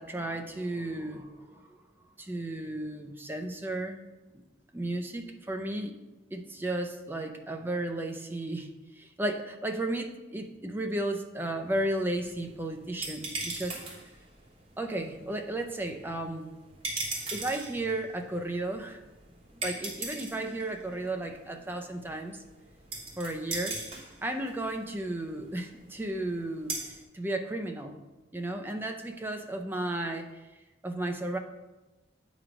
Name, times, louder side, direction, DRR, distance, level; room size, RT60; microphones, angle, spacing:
voice 1, 0.0-1.7 2.2-4.0 4.3-4.4 4.7-5.9 6.3-13.8 14.8-16.5 17.3-19.0 19.5-22.4 23.2-23.8 24.2-26.8 27.1-28.0 28.3-30.5 30.8-31.4, right 1 dB, 10° right, 4 dB, 0.5 m, -34 dB
sound 1, 11.7-27.0, right 3 dB, 30° right, 1.2 m, -41 dB
8.6 x 3.1 x 5.1 m, 1.1 s
head